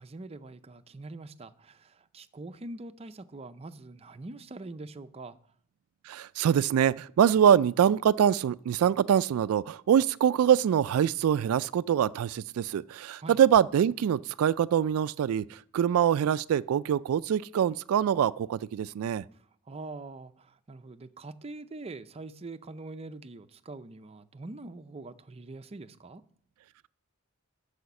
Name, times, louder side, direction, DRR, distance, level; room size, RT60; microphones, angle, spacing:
voice 1, 0.0-5.4 13.2-13.4 19.3-26.2, right 2 dB, 30° right, 0.5 m, -44 dB
voice 2, 6.1-19.2, right 9 dB, 85° right, 0.3 m, -24 dB
12.5 x 5.0 x 6.9 m
head